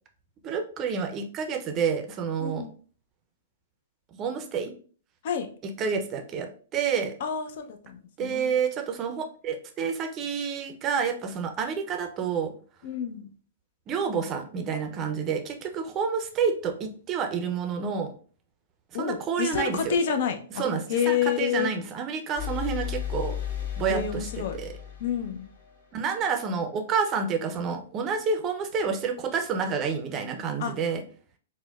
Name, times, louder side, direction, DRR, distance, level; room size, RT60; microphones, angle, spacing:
voice 1, 0.4-2.7 4.2-4.7 5.6-7.1 8.2-12.5 13.9-18.1 18.9-20.0 20.6-23.4 23.8-24.7 25.9-31.0, right 6 dB, 30° right, 5 dB, 0.5 m, -29 dB
voice 2, 2.4-2.7 5.2-5.5 7.2-8.5 12.8-13.3 18.9-20.6 20.9-21.7 23.9-24.6 25.0-25.5 30.6-30.7, left 8 dB, 55° left, 6 dB, 0.5 m, -28 dB
sound 1, 22.4-26.1, left 10 dB, 75° left, 1.1 m, -34 dB
4.3 x 2.1 x 2.3 m, 0.43 s
hypercardioid pair, 120°, 0 cm